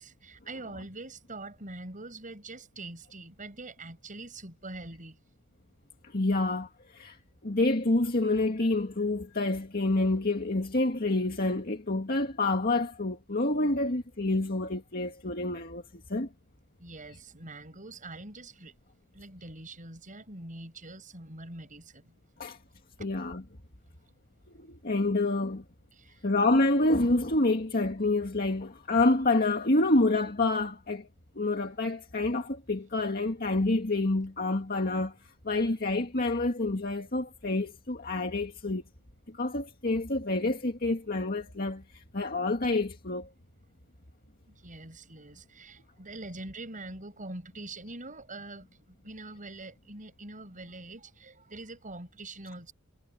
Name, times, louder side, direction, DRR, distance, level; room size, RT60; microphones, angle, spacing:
voice 1, 0.0-5.2 16.8-18.7 19.1-22.1 23.0-23.1 25.9-26.3 44.5-52.7, right 2 dB, 35° right, 6.8 m, -44 dB
voice 2, 6.0-7.2 7.4-15.8 16.1-16.3 22.4-22.6 23.0-23.4 24.5-25.6 26.2-31.1 31.4-35.2 35.4-38.8 39.3-43.3, left 2 dB, 45° left, 2.0 m, -28 dB
head